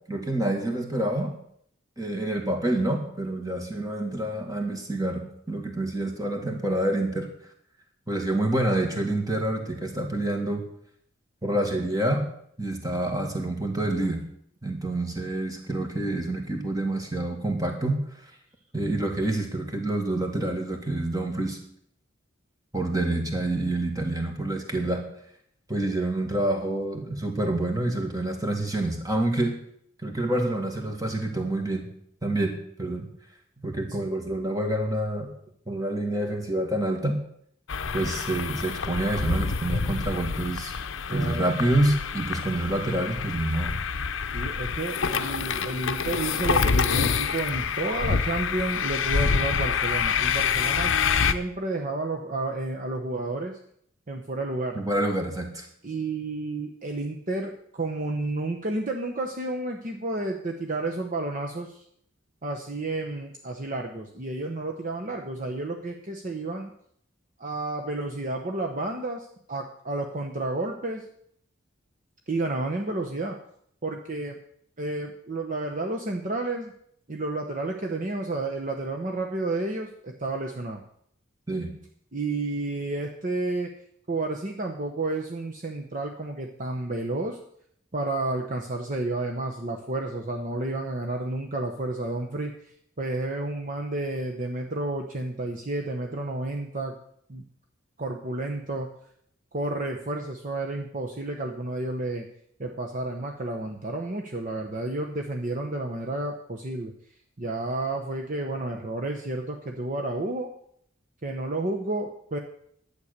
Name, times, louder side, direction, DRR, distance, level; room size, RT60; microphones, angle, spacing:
voice 1, 0.1-1.3 2.0-7.3 8.1-10.6 11.4-12.3 12.6-14.2 14.6-18.0 18.7-21.6 22.7-25.0 25.7-29.6 30.0-31.9 32.2-33.1 33.6-35.3 35.7-37.2 37.9-40.7 41.1-43.8 54.8-55.7 81.5-81.7, right 1 dB, 15° right, 3 dB, 2.0 m, -27 dB
sound 1, 37.7-51.3, left 6 dB, 65° left, 0.7 m, -27 dB
voice 2, 41.1-41.5 44.3-53.6 54.1-54.8 55.8-61.9 62.4-66.7 67.4-71.1 72.3-73.4 73.8-74.4 74.8-76.7 77.1-80.8 82.1-83.7 84.1-87.4 87.9-97.0 97.3-97.4 98.0-98.9 99.5-102.3 102.6-106.9 107.4-110.5 111.2-112.4, right 2 dB, 40° right, 2 dB, 1.0 m, -31 dB
11.5 x 8.4 x 6.7 m, 0.67 s
head